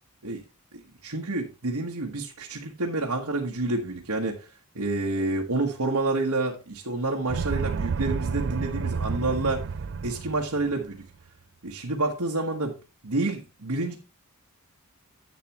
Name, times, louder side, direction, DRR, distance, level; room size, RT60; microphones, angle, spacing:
voice 1, 0.7-4.5 4.7-9.7 10.0-11.0 11.6-12.7 13.0-13.9, right 2 dB, 80° right, -1 dB, 1.4 m, -28 dB
sound 1, 7.3-10.8, right 5 dB, 55° right, 0.4 m, -30 dB
10.5 x 8.5 x 3.0 m, 0.29 s
head